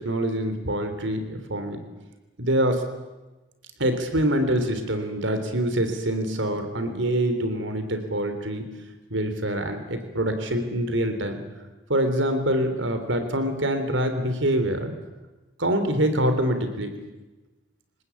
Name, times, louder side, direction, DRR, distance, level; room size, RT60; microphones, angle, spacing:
voice 1, 0.0-1.8 2.4-2.8 3.8-8.7 9.1-11.4 11.9-14.9 15.6-16.9, right 1 dB, 85° right, 8 dB, 3.6 m, -25 dB
27.0 x 19.0 x 8.6 m, 1.1 s
head